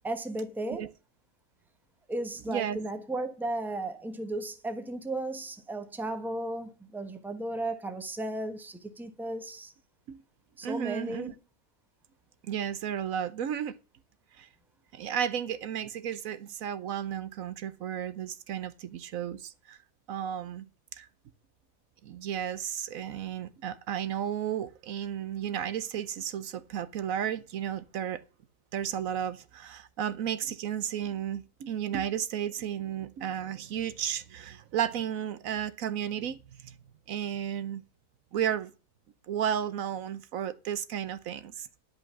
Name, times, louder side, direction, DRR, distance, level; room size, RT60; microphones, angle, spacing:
voice 1, 0.0-0.9 2.1-9.7 10.6-11.3, right 1 dB, ahead, 1.0 m, -35 dB
voice 2, 10.6-11.3 12.4-13.7 14.4-14.5 14.9-19.8 20.1-20.7 20.9-21.1 22.0-28.2 28.7-36.8 37.1-37.8 38.3-38.7 39.3-41.7, right 9 dB, 75° right, 1.1 m, -33 dB
11.0 x 5.4 x 7.0 m
omnidirectional pair, 1.5 m